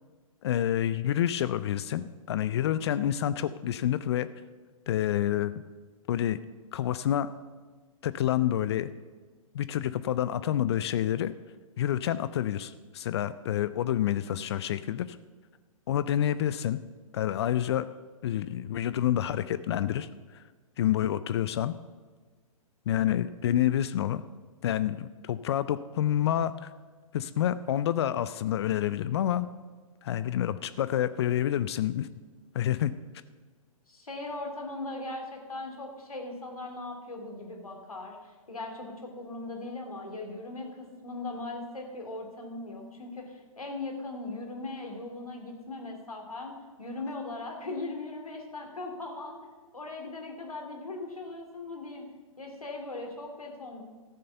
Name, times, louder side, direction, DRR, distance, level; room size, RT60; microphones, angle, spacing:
voice 1, 0.4-4.3 4.9-5.5 6.1-6.4 6.7-7.3 8.0-8.9 9.5-11.3 11.8-15.2 15.9-16.8 17.1-17.9 18.2-20.4 20.8-21.7 22.9-24.2 24.6-26.7 27.1-29.5 30.0-32.1 32.5-32.9, left 11 dB, 50° left, 14 dB, 0.5 m, -28 dB
voice 2, 33.9-46.5 46.8-49.4 49.7-52.1 52.4-53.8, left 2 dB, 85° left, 2 dB, 2.5 m, -39 dB
14.0 x 6.7 x 6.7 m, 1.4 s
figure-of-eight pair, 120°, 18 cm